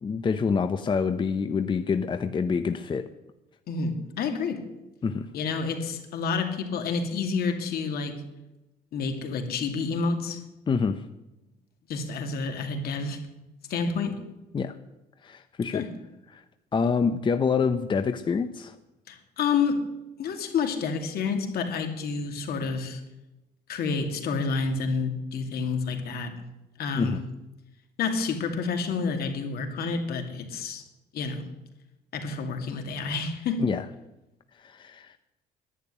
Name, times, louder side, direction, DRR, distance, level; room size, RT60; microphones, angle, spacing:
voice 1, 0.0-3.1 5.0-5.3 10.7-11.0 14.5-14.8 15.2-15.9 16.3-16.4 16.7-18.8 27.0-27.2 33.6-33.9 34.6-35.2, left 5 dB, 30° left, 9 dB, 0.7 m, -26 dB
voice 2, 3.7-4.6 5.3-8.2 8.9-10.4 11.9-13.2 13.7-14.2 15.7-15.9 19.1-19.8 20.2-23.0 23.7-26.4 26.8-27.2 28.0-30.8 31.1-31.4 32.1-33.6, left 4 dB, 65° left, 5 dB, 2.6 m, -29 dB
11.0 x 9.9 x 9.9 m, 1.0 s
cardioid pair, 110°, 17 cm